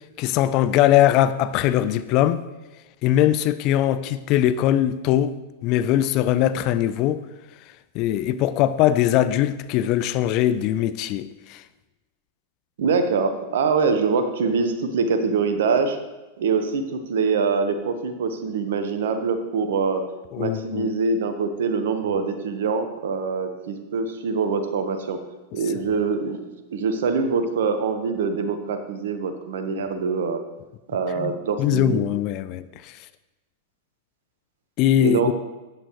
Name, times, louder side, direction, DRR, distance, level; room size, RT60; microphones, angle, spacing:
voice 1, 0.2-2.4 3.0-5.4 5.6-7.2 7.9-11.6 20.3-20.9 31.2-31.3 31.6-33.0 34.8-35.2, left 12 dB, 45° left, 0.6 m, -21 dB
voice 2, 12.8-16.0 16.4-20.0 20.4-25.2 25.5-26.4 26.7-30.4 30.9-32.0 35.0-35.3, right 5 dB, 70° right, 1.3 m, -24 dB
13.0 x 8.9 x 3.2 m
hypercardioid pair, 95°, 0 cm